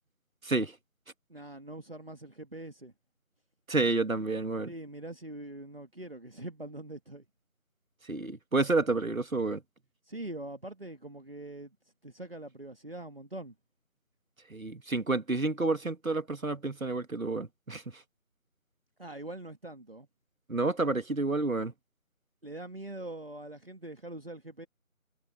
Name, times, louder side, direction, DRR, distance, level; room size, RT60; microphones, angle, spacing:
voice 1, 1.3-2.9 4.7-7.2 10.1-11.7 12.0-13.5 19.0-20.1 22.4-24.7, right 1 dB, 40° right, 2.1 m, -43 dB
voice 2, 3.7-4.7 8.1-9.6 14.5-17.8 20.5-21.7, right 3 dB, 70° right, 2.0 m, -29 dB
figure-of-eight pair, 180°, 42 cm